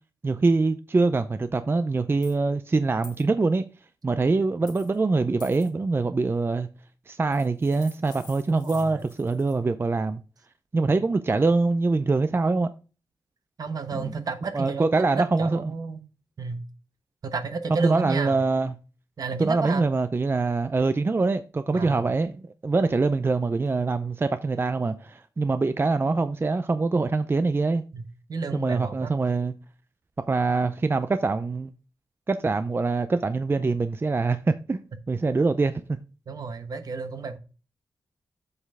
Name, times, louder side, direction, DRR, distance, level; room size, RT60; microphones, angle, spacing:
voice 1, 0.2-3.6 4.0-6.7 7.1-10.2 10.7-12.7 13.9-14.1 14.5-15.6 17.7-18.7 19.4-27.8 28.5-29.5 30.3-31.7 32.3-36.0, right 3 dB, 35° right, 0.5 m, -24 dB
sound 1, 2.2-2.4 3.0-3.2 4.7-5.0 5.4-5.7 7.3-9.6, left 5 dB, 85° left, 1.9 m, -49 dB
voice 2, 8.5-9.0 13.6-16.0 16.4-16.6 17.2-18.4 19.2-19.9 21.7-22.1 27.9-29.2 36.3-37.4, right 4 dB, 65° right, 1.1 m, -32 dB
8.0 x 5.5 x 3.6 m
cardioid pair, 65°, 7 cm